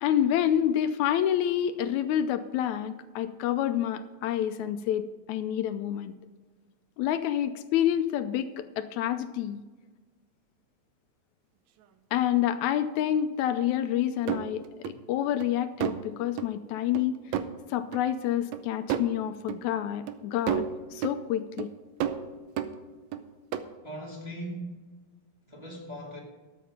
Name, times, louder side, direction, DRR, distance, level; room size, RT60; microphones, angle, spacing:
voice 1, 0.0-6.1 7.0-9.6 12.1-17.3 17.7-21.7, left 10 dB, 80° left, 10 dB, 1.9 m, -28 dB
sound 1, 14.3-14.9 15.4-15.5 15.8-16.1 16.4-16.5 16.9-17.0 17.3-17.5 17.9-18.0 18.5-18.6 18.9-19.1 19.5-19.6 20.1-20.2 20.5-21.2 21.6-21.7 22.0-23.2 23.5-23.6, right 9 dB, 75° right, 1.9 m, -31 dB
voice 2, 23.8-24.9 25.5-26.2, right 1 dB, 10° right, -3 dB, 1.8 m, -39 dB
13.0 x 7.7 x 5.1 m, 1.3 s
omnidirectional pair, 3.4 m